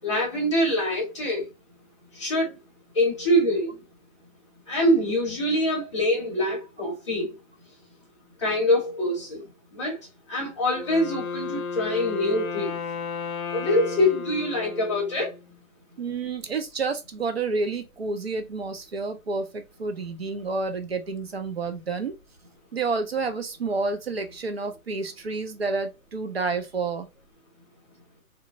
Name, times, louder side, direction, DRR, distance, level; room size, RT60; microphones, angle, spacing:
voice 1, 0.0-1.5 2.1-2.6 2.9-3.8 4.7-7.3 8.4-9.4 9.7-10.0 10.3-12.8 13.5-15.3, left 1 dB, 20° left, 0.8 m, -24 dB
Wind instrument woodwind instrument, 10.7-15.6, left 5 dB, 70° left, 0.7 m, -33 dB
voice 2, 16.0-22.1 22.7-27.1, right 4 dB, 45° right, 0.5 m, -29 dB
3.0 x 2.2 x 2.5 m
hypercardioid pair, 175°, 44 cm